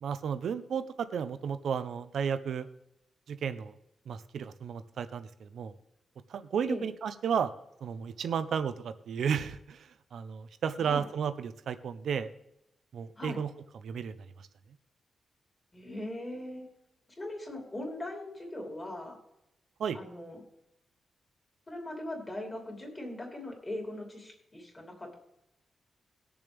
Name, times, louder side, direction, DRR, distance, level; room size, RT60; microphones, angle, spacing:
voice 1, 0.0-2.7 3.3-3.7 4.1-5.7 6.3-7.5 7.8-12.3 12.9-13.5 13.8-14.5 19.8-20.0, right 7 dB, 75° right, 11 dB, 0.7 m, -33 dB
voice 2, 15.7-16.7 17.2-19.2 19.9-20.4 21.7-25.1, left 1 dB, 20° left, 0 dB, 2.9 m, -40 dB
19.5 x 7.0 x 3.5 m, 0.83 s
wide cardioid pair, 170°, 0 cm